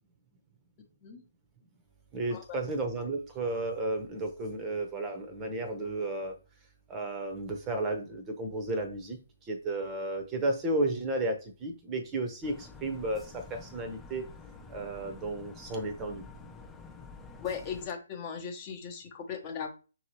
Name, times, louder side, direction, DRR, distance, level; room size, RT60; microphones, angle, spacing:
voice 1, 2.1-6.3 6.9-14.3 14.7-16.2, right 2 dB, 20° right, 5 dB, 0.8 m, -33 dB
sound 1, 12.4-17.9, left 4 dB, 5° left, 0.4 m, -49 dB
voice 2, 17.4-19.8, left 7 dB, 30° left, 2 dB, 0.8 m, -38 dB
5.8 x 2.9 x 3.0 m, 0.34 s
figure-of-eight pair, 135°, 0 cm